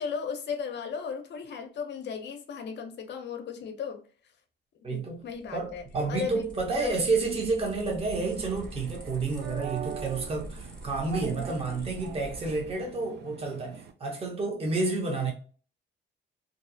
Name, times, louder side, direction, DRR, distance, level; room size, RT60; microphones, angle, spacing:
voice 1, 0.0-4.0 4.9-6.5 6.8-7.0, left 6 dB, 60° left, 0.5 m, -36 dB
voice 2, 4.8-5.2 5.5-15.3, right 3 dB, 30° right, 0.8 m, -30 dB
sound 1, 5.2-12.9, equal, 5° left, 0.7 m, -45 dB
sound 2, 8.2-13.9, right 8 dB, 60° right, 0.4 m, -42 dB
2.6 x 2.0 x 2.5 m
cardioid pair, 90°, 20 cm